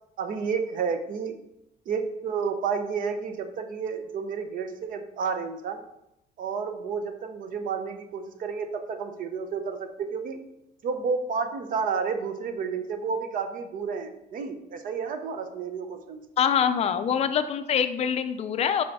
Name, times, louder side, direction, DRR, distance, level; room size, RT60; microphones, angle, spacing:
voice 1, 0.2-1.4 1.9-5.8 6.4-10.4 10.8-16.2, right 5 dB, 60° right, 8 dB, 0.7 m, -31 dB
voice 2, 16.4-18.8, left 8 dB, 40° left, 10 dB, 0.5 m, -24 dB
5.6 x 5.0 x 4.7 m, 0.84 s
cardioid pair, 165°, 16 cm